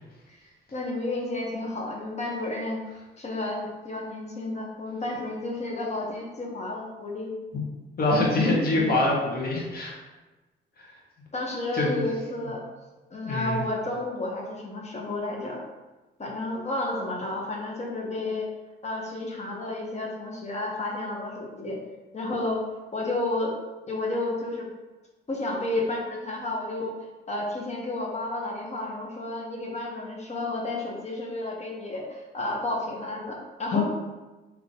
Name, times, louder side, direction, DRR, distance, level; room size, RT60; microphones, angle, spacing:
voice 1, 0.7-2.8 3.2-7.4 11.3-12.6 13.1-15.6 16.2-18.5 18.8-21.8 22.1-22.6 22.9-23.5 23.9-24.7 25.3-26.9 27.3-33.8, left 2 dB, 35° left, -1 dB, 1.2 m, -31 dB
voice 2, 8.0-10.0 10.8-10.9 11.7-12.0 13.2-13.6 33.7-33.8, left 2 dB, 50° left, -3 dB, 1.5 m, -24 dB
4.0 x 3.2 x 3.8 m, 1.2 s
cardioid pair, 90°, 20 cm